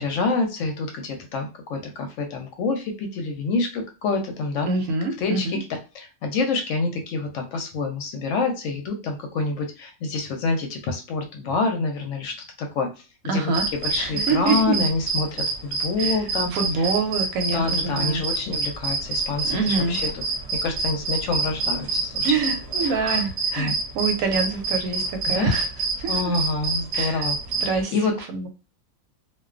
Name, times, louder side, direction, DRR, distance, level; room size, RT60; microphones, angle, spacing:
voice 1, 0.0-4.7 5.2-12.9 13.2-16.5 16.8-16.9 17.5-20.2 20.6-22.3 22.8-23.2 23.6-23.7 25.3-25.5 26.1-27.4 27.9-28.1, left 3 dB, 70° left, 3 dB, 0.8 m, -27 dB
voice 2, 4.7-5.6 13.3-13.7 14.0-14.7 16.0-16.2 16.5-18.2 19.4-20.0 22.2-25.7 26.0-26.3 26.9-27.3 27.6-27.9 28.3-28.5, right 4 dB, 80° right, 5 dB, 1.0 m, -25 dB
sound 1, 13.5-27.8, right 3 dB, 60° right, 0.8 m, -27 dB
2.4 x 2.2 x 2.4 m, 0.31 s
omnidirectional pair, 1.5 m